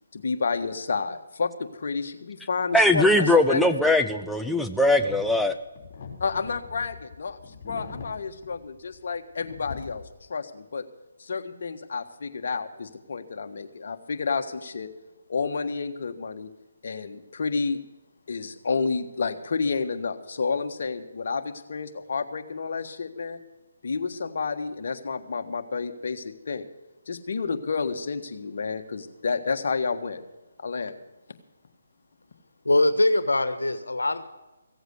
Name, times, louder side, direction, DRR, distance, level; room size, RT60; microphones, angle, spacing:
voice 1, 0.1-3.9 6.2-7.4 7.6-10.0 10.3-10.8 11.2-14.9 15.3-16.5 16.8-17.8 18.3-23.4 23.8-26.7 27.1-30.2 30.6-30.9, left 4 dB, 60° left, 5 dB, 1.5 m, -30 dB
voice 2, 2.7-5.5, left 1 dB, ahead, 4 dB, 0.5 m, -20 dB
sound 1, 4.8-9.2 9.4-10.2, left 5 dB, 35° left, 3.8 m, -42 dB
voice 3, 32.6-34.2, left 2 dB, 85° left, 11 dB, 1.4 m, -22 dB
16.0 x 7.9 x 8.0 m, 1.1 s
figure-of-eight pair, 150°, 0 cm